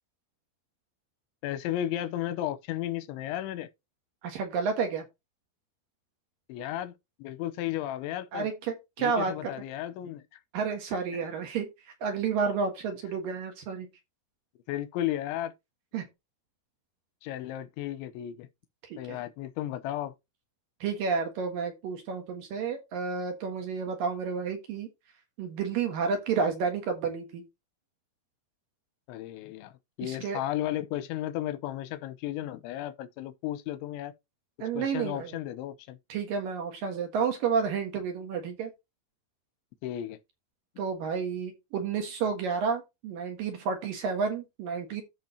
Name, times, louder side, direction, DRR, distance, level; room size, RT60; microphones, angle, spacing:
voice 1, 1.4-3.7 6.5-6.9 7.2-8.5 9.0-10.2 14.7-15.5 17.2-18.5 19.0-20.1 29.1-34.1 34.7-36.0 39.8-40.2, left 13 dB, 90° left, 3.1 m, -34 dB
voice 2, 4.2-5.0 8.3-9.5 10.5-13.9 15.9-16.1 18.8-19.2 20.8-24.9 25.4-27.4 30.0-30.4 34.6-35.4 36.1-38.7 40.8-45.0, right 5 dB, 60° right, 2.7 m, -31 dB
14.0 x 5.0 x 2.8 m
omnidirectional pair, 5.4 m